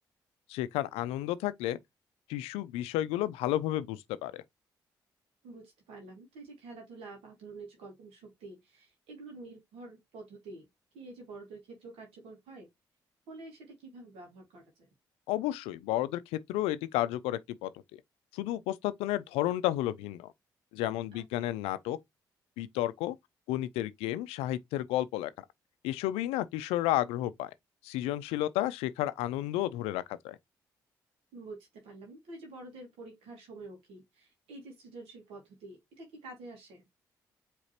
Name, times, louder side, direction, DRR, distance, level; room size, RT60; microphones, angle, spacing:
voice 1, 0.5-1.8 2.3-4.4 15.3-17.7 18.3-20.3 20.7-22.0 22.6-23.2 23.5-25.3 25.8-27.5 27.8-30.4, left 14 dB, 80° left, 0.4 m, -32 dB
voice 2, 5.4-10.7 10.9-12.7 13.3-14.9 21.1-21.5 31.3-36.9, right 2 dB, 75° right, 1.7 m, -48 dB
4.9 x 3.3 x 2.8 m
hypercardioid pair, 45°, 10 cm